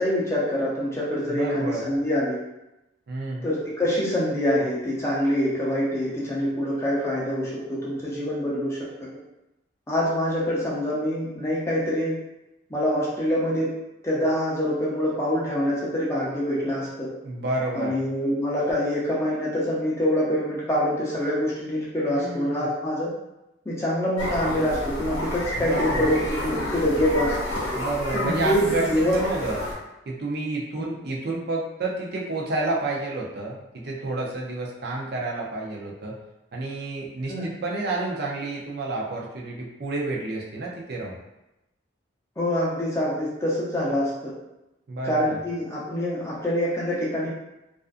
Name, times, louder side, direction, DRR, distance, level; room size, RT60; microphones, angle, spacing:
voice 1, 0.0-2.4 3.4-8.8 9.9-12.1 12.7-13.7 14.0-17.1 17.7-23.1 23.7-26.2 26.4-27.5 28.1-29.2 37.3-37.5 42.4-44.1 45.0-47.3, equal, 15° left, -7 dB, 0.6 m, -25 dB
voice 2, 1.3-1.9 3.1-3.5 17.2-18.0 22.1-22.7 25.6-26.1 27.7-29.7 30.1-36.2 36.5-41.2 44.9-45.4, right 2 dB, 55° right, -3 dB, 0.4 m, -30 dB
sound 1, 24.2-29.7, left 1 dB, 85° left, 0.9 m, -30 dB
2.4 x 2.4 x 2.4 m, 0.92 s
head